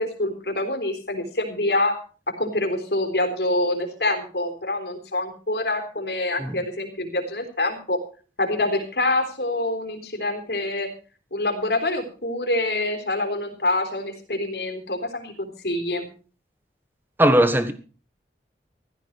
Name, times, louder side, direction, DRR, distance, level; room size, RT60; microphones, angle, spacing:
voice 1, 0.0-2.0 2.3-8.0 8.4-10.9 11.3-16.1, left 2 dB, 70° left, 3.7 m, -26 dB
voice 2, 17.2-17.7, right 1 dB, 10° right, 1.4 m, -18 dB
16.0 x 13.5 x 4.7 m
head